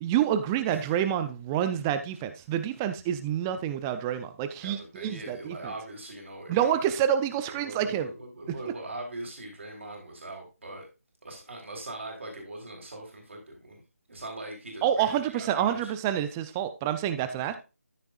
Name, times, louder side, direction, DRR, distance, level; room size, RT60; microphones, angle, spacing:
voice 1, 0.0-5.6 6.5-8.1 14.8-17.6, right 10 dB, 10° right, 10 dB, 0.5 m, -28 dB
voice 2, 0.7-1.0 4.6-6.9 7.5-10.9 11.2-13.8 14.1-15.9 17.3-17.5, right 2 dB, 55° right, 2 dB, 4.0 m, -41 dB
13.5 x 6.5 x 2.4 m, 0.29 s
figure-of-eight pair, 160°, 8 cm